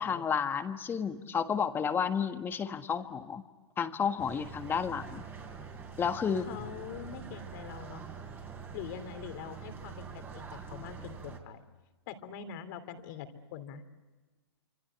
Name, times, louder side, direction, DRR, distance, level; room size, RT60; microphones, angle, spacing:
voice 1, 0.0-3.4 3.8-5.2 6.0-6.5, left 7 dB, 15° left, 8 dB, 1.5 m, -31 dB
sound 1, 4.2-11.4, right 6 dB, 15° right, 3.3 m, -45 dB
voice 2, 6.3-8.1 8.7-11.6 12.1-13.8, left 8 dB, 45° left, 9 dB, 2.9 m, -44 dB
27.0 x 26.0 x 8.0 m, 1.2 s
hypercardioid pair, 140°, 14 cm